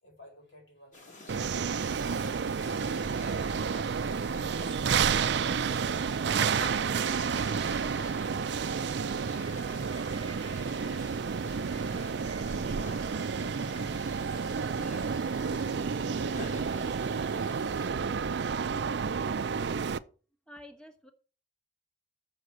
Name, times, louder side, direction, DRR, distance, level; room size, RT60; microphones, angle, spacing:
voice 1, 0.0-2.1 10.4-12.6 13.3-15.3 16.0-17.6 18.3-18.9, left 1 dB, 65° left, 4.4 m, -56 dB
sound 1, 0.9-17.9, left 2 dB, 40° left, 2.2 m, -48 dB
sound 2, 1.3-20.0, right 6 dB, 60° right, 0.4 m, -30 dB
voice 2, 20.5-21.1, left 1 dB, 5° left, 1.2 m, -49 dB
7.0 x 6.4 x 6.6 m
head